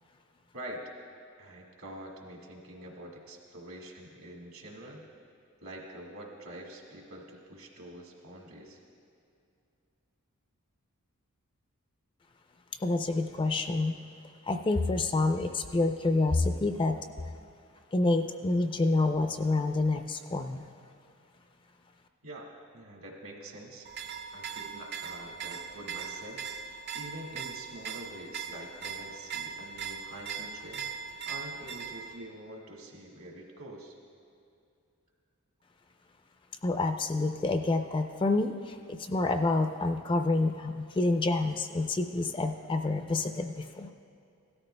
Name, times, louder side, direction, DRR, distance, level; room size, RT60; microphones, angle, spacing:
voice 1, 1.4-5.0 5.6-8.8 22.2-23.9 24.3-30.9 31.3-33.9, right 1 dB, 70° right, 0 dB, 1.7 m, -46 dB
voice 2, 12.8-13.9 14.5-17.0 17.9-20.6 36.6-43.9, left 2 dB, 20° left, 7 dB, 0.3 m, -28 dB
sound 1, 23.8-32.2, right 6 dB, 50° right, 0.6 m, -40 dB
17.0 x 13.0 x 2.2 m, 2.5 s
head